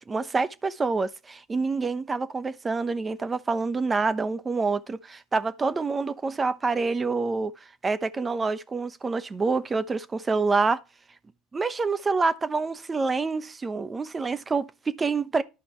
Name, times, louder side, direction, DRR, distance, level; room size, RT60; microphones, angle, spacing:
voice 1, 0.1-7.5 7.8-10.8 11.5-15.4, right 4 dB, 25° right, 1.0 m, -27 dB
12.0 x 5.0 x 4.5 m
hypercardioid pair, 80°, 0 cm